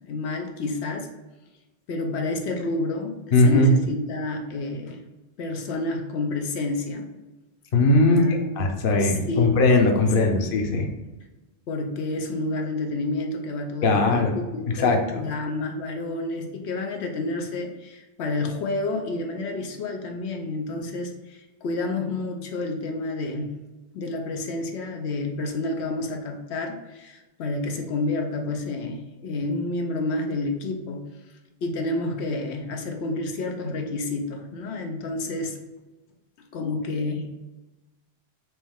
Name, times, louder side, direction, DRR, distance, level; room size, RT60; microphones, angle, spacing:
voice 1, 0.0-1.1 1.9-5.0 5.4-7.1 8.0-8.5 9.0-9.6 10.3-10.4 11.7-23.5 23.9-31.0 31.6-35.6 36.5-37.3, left 2 dB, 90° left, 2 dB, 0.9 m, -29 dB
voice 2, 3.3-3.7 7.7-8.2 8.6-10.9 13.8-14.3 14.8-15.2, left 2 dB, 60° left, 3 dB, 0.9 m, -19 dB
4.6 x 3.1 x 3.4 m, 1.1 s
omnidirectional pair, 1.1 m